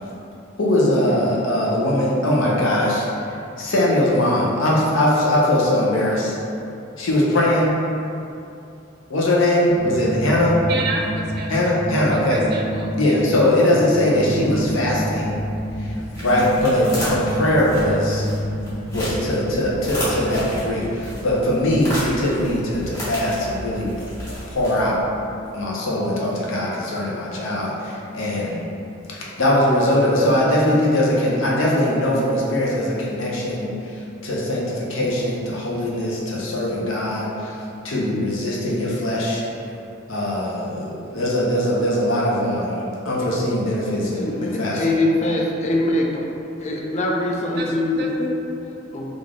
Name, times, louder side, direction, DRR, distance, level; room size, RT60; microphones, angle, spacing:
voice 1, 0.6-3.1 3.6-6.3 7.0-7.7 9.1-10.5 11.5-12.4 12.9-15.4 15.8-15.9 16.2-18.3 18.9-23.9 24.5-25.0 25.5-28.6 29.1-37.6 37.8-39.4 40.1-44.8, left 1 dB, 85° left, -4 dB, 0.7 m, -21 dB
sound 1, 9.7-21.3, equal, 15° right, 0.8 m, -29 dB
voice 2, 10.7-11.6 12.1-13.2 47.6-47.7 48.0-48.1, right 3 dB, 55° right, 0 dB, 0.4 m, -29 dB
sound 2, 14.3-25.2, equal, 20° left, 1.3 m, -33 dB
voice 3, 43.9-46.3 46.6-49.1, left 1 dB, 35° left, -1 dB, 0.4 m, -23 dB
3.4 x 2.5 x 3.6 m, 2.7 s
head